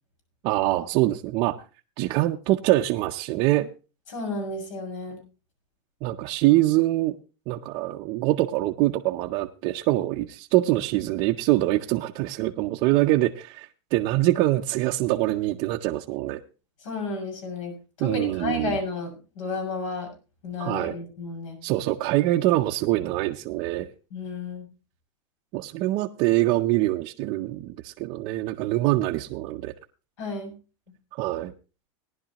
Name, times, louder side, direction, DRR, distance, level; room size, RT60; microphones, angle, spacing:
voice 1, 0.4-1.6 2.0-3.7 6.0-7.1 7.5-16.4 18.0-18.8 20.6-20.9 21.6-23.9 25.5-29.7 31.2-31.5, right 17 dB, 35° right, 1 dB, 0.6 m, -24 dB
voice 2, 4.1-5.2 16.8-17.7 18.0-20.1 20.4-21.6 24.1-24.7 30.2-30.5, left 3 dB, 80° left, 5 dB, 6.4 m, -32 dB
18.5 x 11.0 x 2.9 m, 0.32 s
supercardioid pair, 170°, 16 cm